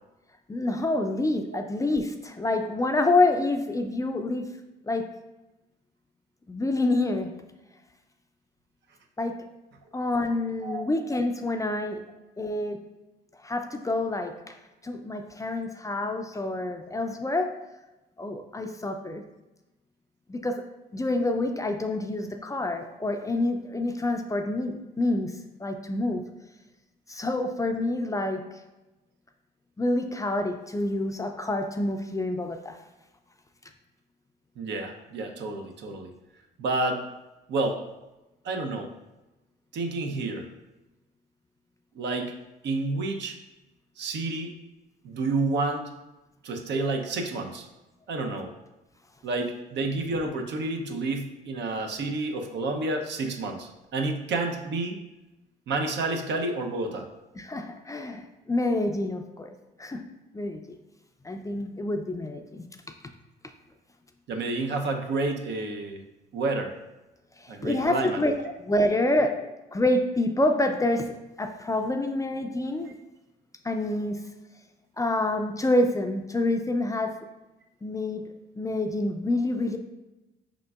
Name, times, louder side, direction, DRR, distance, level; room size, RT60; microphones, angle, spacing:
voice 1, 0.5-4.5 4.9-5.0 6.5-7.3 9.2-9.4 9.9-12.0 12.4-12.8 13.4-14.6 14.8-17.5 18.2-19.2 20.3-20.6 20.9-25.3 25.6-26.2 27.1-28.4 29.8-32.8 57.4-60.1 60.3-60.8 61.2-62.6 67.4-68.3 68.6-69.4 69.7-72.9 73.6-74.2 75.0-77.1 77.8-78.2 78.6-79.8, left 2 dB, 15° left, 5 dB, 0.4 m, -27 dB
voice 2, 34.6-36.1 36.6-37.0 37.5-37.8 38.4-38.9 39.7-40.5 42.0-42.3 42.6-43.4 44.0-44.6 45.0-45.9 46.4-47.7 48.1-48.5 49.2-55.0 55.7-57.1 64.3-66.0 66.3-66.7 67.5-68.5, right 2 dB, 65° right, 4 dB, 0.7 m, -29 dB
4.9 x 3.7 x 2.3 m, 1.0 s
supercardioid pair, 65°, 20 cm